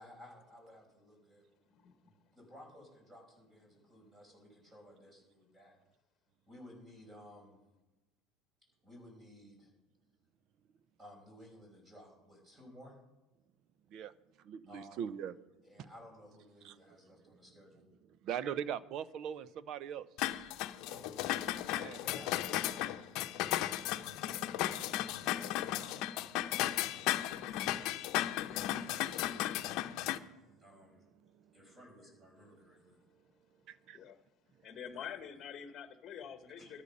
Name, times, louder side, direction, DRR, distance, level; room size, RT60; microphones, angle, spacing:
voice 1, 0.0-1.8 2.0-5.8 6.5-7.6 8.8-9.7 11.0-12.9 14.7-15.1 15.6-17.8 20.9-21.5 21.9-22.5 25.3-28.2 28.5-29.7 30.6-31.1 31.5-33.0 34.9-35.1 36.6-36.7, equal, 20° right, 1 dB, 5.5 m, -57 dB
voice 2, 14.4-15.3 16.6-16.8 17.3-17.4 18.2-20.1 21.7-22.0 22.5-22.9 23.9-24.0 33.7-34.0, right 9 dB, 50° right, 17 dB, 0.7 m, -40 dB
sound 1, 20.2-30.2, left 14 dB, 60° left, 0.8 m, -35 dB
voice 3, 34.6-36.8, left 8 dB, 35° left, 8 dB, 1.3 m, -46 dB
13.5 x 9.9 x 5.4 m, 1.1 s
supercardioid pair, 120°, 0 cm